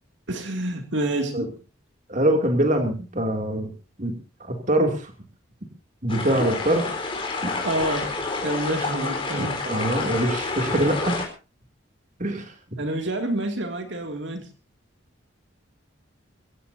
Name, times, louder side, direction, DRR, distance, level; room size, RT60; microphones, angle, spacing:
voice 1, 0.3-1.5 7.6-9.7 12.8-14.5, right 1 dB, 65° right, 5 dB, 2.6 m, -28 dB
voice 2, 2.1-3.7 4.0-4.1 4.4-5.1 6.0-6.9 7.4-7.6 9.6-11.2 12.2-12.5, right 1 dB, 40° right, 4 dB, 2.9 m, -23 dB
sound 1, 6.1-11.2, left 3 dB, 25° left, 4.3 m, -29 dB
24.0 x 16.0 x 2.8 m, 0.34 s
head